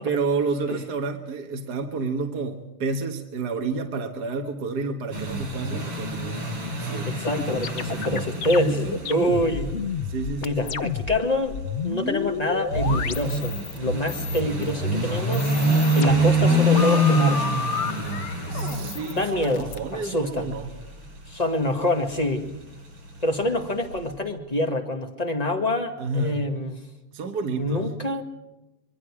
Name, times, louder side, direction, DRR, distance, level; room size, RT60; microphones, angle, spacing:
voice 1, 0.0-6.3 6.8-7.1 8.7-9.6 10.1-10.8 18.5-20.7 26.0-26.4 27.1-27.8, right 3 dB, 50° right, 3 dB, 1.9 m, -30 dB
sound 1, 5.1-24.0, right 1 dB, 90° right, 7.9 m, -27 dB
voice 2, 7.0-9.7 10.4-11.6 11.8-15.5 15.9-17.5 19.1-20.5 21.3-22.5 23.2-26.8 27.6-28.2, left 1 dB, 20° left, 3 dB, 1.8 m, -26 dB
sound 2, 7.2-11.2 11.4-13.8 14.1-14.7 15.2-17.9 18.6-19.8, left 5 dB, 75° left, 0.6 m, -31 dB
sound 3, 14.4-19.9, left 7 dB, 55° left, 1.6 m, -38 dB
26.0 x 22.5 x 4.9 m, 1.0 s
omnidirectional pair, 2.4 m